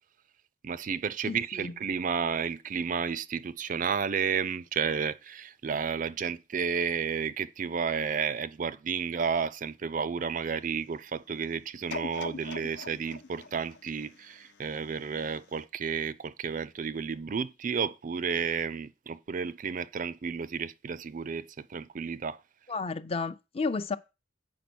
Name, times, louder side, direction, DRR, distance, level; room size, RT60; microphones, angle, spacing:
voice 1, 0.6-22.4, right 6 dB, 50° right, 0.4 m, -32 dB
voice 2, 1.2-1.7 22.7-24.0, left 4 dB, 35° left, 0.5 m, -32 dB
sound 1, 11.9-15.0 15.5-15.6, left 3 dB, 75° left, 0.7 m, -42 dB
8.2 x 5.0 x 6.1 m
head